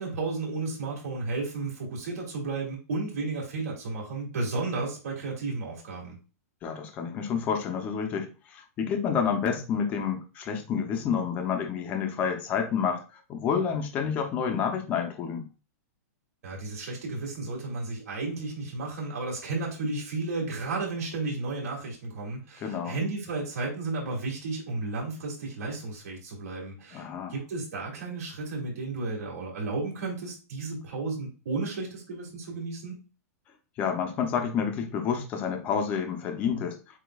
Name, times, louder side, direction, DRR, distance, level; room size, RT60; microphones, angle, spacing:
voice 1, 0.0-6.2 16.4-33.0, right 3 dB, 65° right, -2 dB, 2.8 m, -33 dB
voice 2, 6.6-13.0 13.3-15.5 22.6-23.0 26.9-27.3 33.8-36.8, left 7 dB, 20° left, 4 dB, 0.6 m, -29 dB
7.9 x 2.8 x 2.3 m, 0.33 s
supercardioid pair, 175°, 9 cm